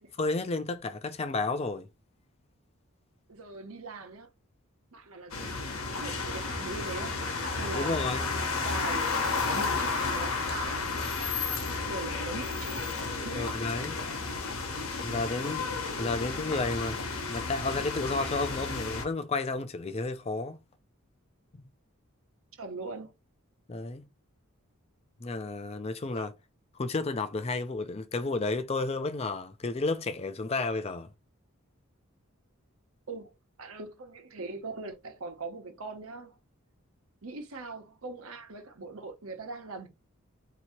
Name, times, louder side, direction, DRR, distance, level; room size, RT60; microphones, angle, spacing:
voice 1, 0.2-1.9 7.7-8.2 13.4-13.9 15.0-15.7 16.0-17.0 17.3-20.6 21.5-21.6 23.7-24.0 25.2-26.3 26.7-31.1, left 3 dB, 30° left, 0.4 m, -32 dB
voice 2, 3.3-4.3 4.9-8.1 8.6-9.2 9.5-12.8 13.2-13.7 22.6-23.1 26.1-26.3 33.1-36.4 37.2-39.9, right 3 dB, 80° right, 1.0 m, -41 dB
sound 1, 5.3-19.0, left 4 dB, 75° left, 1.0 m, -32 dB
2.8 x 2.8 x 4.3 m
head